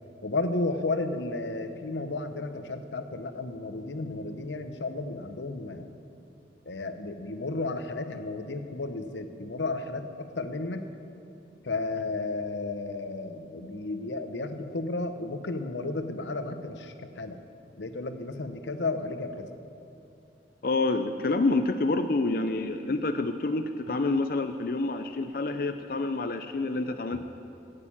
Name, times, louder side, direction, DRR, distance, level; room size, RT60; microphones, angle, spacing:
voice 1, 0.2-5.9 6.7-10.9 11.6-17.4 17.8-19.5, left 2 dB, 90° left, 8 dB, 0.9 m, -33 dB
voice 2, 20.6-27.2, left 2 dB, 55° left, 8 dB, 0.5 m, -28 dB
16.0 x 6.7 x 8.5 m, 2.6 s
head